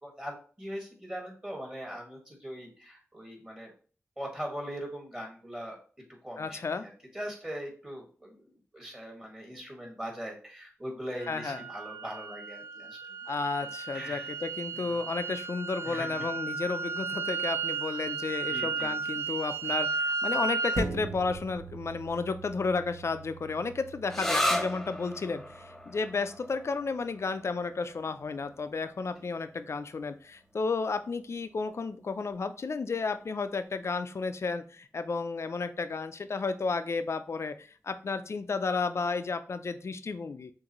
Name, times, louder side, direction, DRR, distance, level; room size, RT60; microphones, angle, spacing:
voice 1, 0.0-3.7 4.2-5.8 6.2-13.0 13.6-13.7 13.9-14.3 14.7-15.0 15.8-16.3 18.5-19.2 29.2-29.3, equal, 15° right, 0 dB, 1.8 m, -41 dB
voice 2, 6.4-6.9 11.3-11.6 13.3-40.5, left 4 dB, 60° left, 10 dB, 0.5 m, -32 dB
sound 1, 11.2-20.9, right 4 dB, 55° right, 0.5 m, -34 dB
sound 2, 20.7-29.6 30.0-30.1, right 3 dB, 90° right, 1.1 m, -43 dB
sound 3, 24.1-31.5, left 1 dB, 5° left, 0.6 m, -36 dB
6.3 x 2.6 x 3.0 m, 0.40 s
wide cardioid pair, 65°, 5 cm